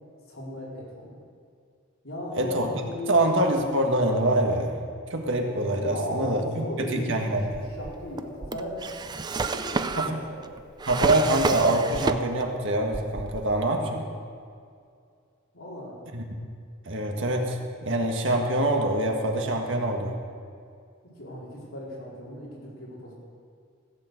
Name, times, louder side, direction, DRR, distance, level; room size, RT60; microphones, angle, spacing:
voice 1, 0.3-1.2 2.0-3.4 5.8-7.0 7.5-8.8 9.3-10.5 15.5-16.0 21.2-23.1, left 1 dB, 75° left, -6 dB, 4.2 m, -37 dB
voice 2, 2.4-2.7 3.1-4.8 5.1-7.6 10.0-10.2 10.9-14.1 16.1-16.2 16.8-20.1, right 1 dB, 65° right, 2 dB, 1.6 m, -25 dB
Drawer open or close, 7.4-12.6 12.9-13.7, right 4 dB, 20° right, 0.4 m, -31 dB
15.5 x 6.8 x 7.9 m, 2.3 s
head